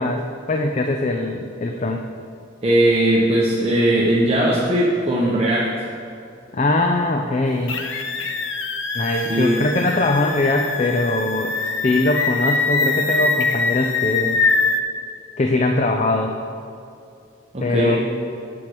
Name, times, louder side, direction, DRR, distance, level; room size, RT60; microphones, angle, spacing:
voice 1, 0.0-2.1 6.5-7.8 8.9-14.4 15.4-16.3 17.6-18.0, left 2 dB, 35° left, 3 dB, 0.5 m, -21 dB
voice 2, 2.6-5.7 9.2-9.7 17.5-18.0, right 1 dB, 30° right, -5 dB, 1.0 m, -19 dB
sound 1, 7.7-14.8, left 4 dB, 85° left, 0.8 m, -23 dB
7.4 x 6.3 x 7.8 m, 2.5 s
head